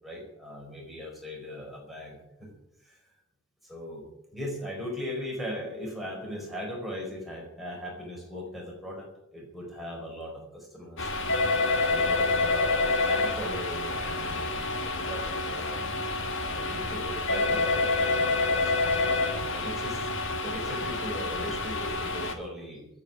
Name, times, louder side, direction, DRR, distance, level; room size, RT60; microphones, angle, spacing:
voice 1, 0.0-2.5 2.8-3.0 3.6-4.0 4.3-11.1 11.6-15.9 16.4-18.7 19.0-20.1 20.4-22.9, left 1 dB, ahead, -2 dB, 4.6 m, -39 dB
sound 1, 11.0-22.3, left 3 dB, 60° left, 1.9 m, -28 dB
13.5 x 8.5 x 9.8 m, 0.83 s
head